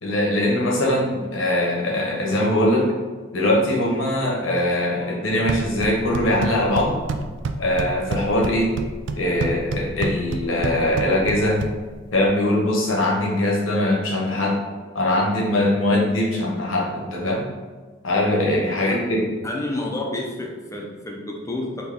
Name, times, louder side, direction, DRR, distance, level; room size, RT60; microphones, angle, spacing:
voice 1, 0.0-2.9 3.3-7.0 7.6-8.7 9.1-11.6 12.1-14.6 14.9-17.4 18.0-19.3, left 1 dB, 90° left, -2 dB, 1.1 m, -21 dB
sound 1, 5.3-12.3, right 3 dB, 65° right, 0.3 m, -30 dB
voice 2, 19.4-21.8, left 2 dB, 15° left, -1 dB, 0.5 m, -30 dB
4.1 x 2.8 x 3.5 m, 1.4 s
head